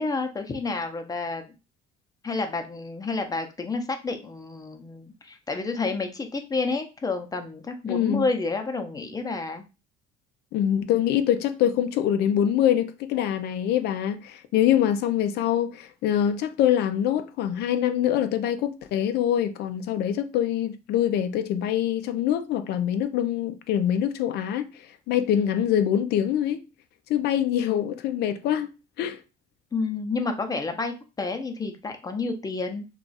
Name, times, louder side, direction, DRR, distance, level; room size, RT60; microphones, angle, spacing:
voice 1, 0.0-1.4 2.2-9.6 29.7-32.9, left 3 dB, 20° left, 0.6 m, -30 dB
voice 2, 7.9-8.3 10.5-24.7 25.1-26.6 27.1-28.7 29.0-29.2, left 10 dB, 75° left, 0.4 m, -24 dB
2.4 x 2.3 x 3.9 m
cardioid pair, 110°, 17 cm